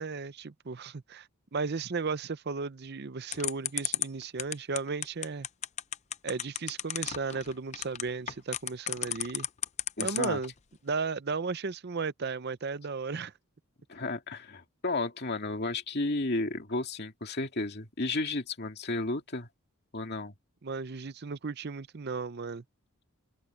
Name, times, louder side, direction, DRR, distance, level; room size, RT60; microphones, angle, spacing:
voice 1, 0.0-5.5 6.2-9.5 10.0-10.5 10.8-13.3 20.6-22.6, right 4 dB, 50° right, 0.6 m, -35 dB
sound 1, 3.3-10.5, left 11 dB, 30° left, 0.5 m, -32 dB
voice 2, 10.0-10.4 13.9-19.5 19.9-20.3, left 2 dB, 50° left, 2.5 m, -33 dB
open air
head